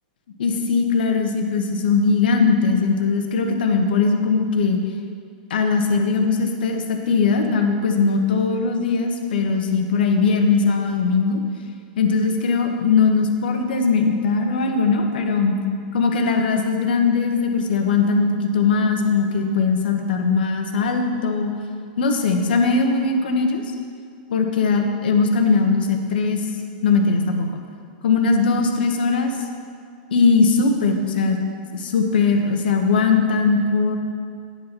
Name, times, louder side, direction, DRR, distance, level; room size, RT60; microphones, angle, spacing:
voice 1, 0.4-4.8 5.5-11.4 12.0-15.6 15.9-21.5 22.0-23.6 24.3-26.4 26.8-27.6 28.0-29.4 30.1-31.4 31.7-34.0, left 4 dB, 80° left, 4 dB, 0.9 m, -20 dB
9.3 x 4.0 x 6.0 m, 2.2 s
hypercardioid pair, 140°, 5 cm